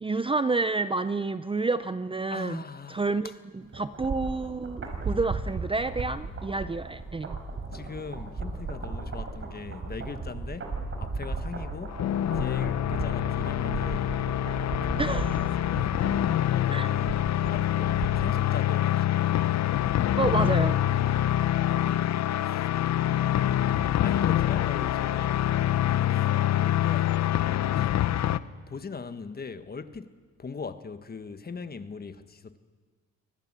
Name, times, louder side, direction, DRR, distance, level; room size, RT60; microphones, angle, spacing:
voice 1, 0.0-2.6 2.9-3.3 3.8-7.4 15.0-15.3 16.7-16.9 20.2-20.8, right 3 dB, 20° right, 0.6 m, -29 dB
voice 2, 2.3-3.3 7.7-14.2 14.8-16.0 16.6-19.4 20.8-22.2 22.4-23.5 24.0-25.5 26.1-27.2 27.7-28.0 28.7-30.1 30.4-32.6, left 5 dB, 30° left, 1.4 m, -41 dB
sound 1, 3.7-18.4 18.7-18.8, right 3 dB, 45° right, 5.5 m, -36 dB
sound 2, 11.9-28.4, left 12 dB, 60° left, 0.8 m, -25 dB
24.5 x 19.5 x 7.5 m
cardioid pair, 90°, 30 cm